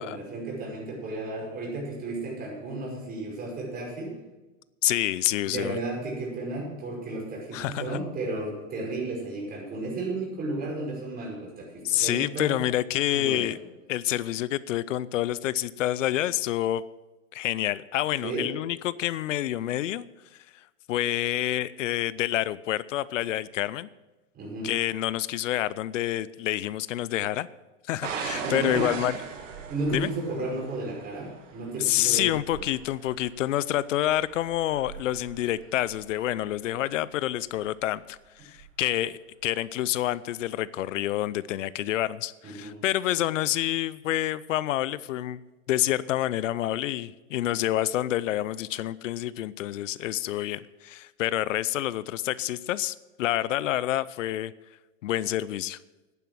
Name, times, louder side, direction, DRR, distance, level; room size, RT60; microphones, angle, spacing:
voice 1, 0.0-4.2 5.4-12.5 13.1-13.5 18.2-18.5 24.3-24.7 28.4-28.9 29.7-32.2 32.5-32.6 42.4-42.7, right 2 dB, 25° right, -2 dB, 5.5 m, -33 dB
voice 2, 4.8-5.8 7.5-8.0 11.8-13.6 13.9-16.8 17.3-20.1 20.9-23.9 24.6-27.5 27.9-29.2 29.9-30.1 31.8-45.4 45.7-54.5 55.0-55.8, left 13 dB, 70° left, 19 dB, 0.6 m, -28 dB
sound 1, 28.0-36.8 37.6-38.0 38.6-38.7, right 6 dB, 75° right, 2.2 m, -39 dB
11.0 x 10.0 x 6.2 m, 1.1 s
hypercardioid pair, 130°, 39 cm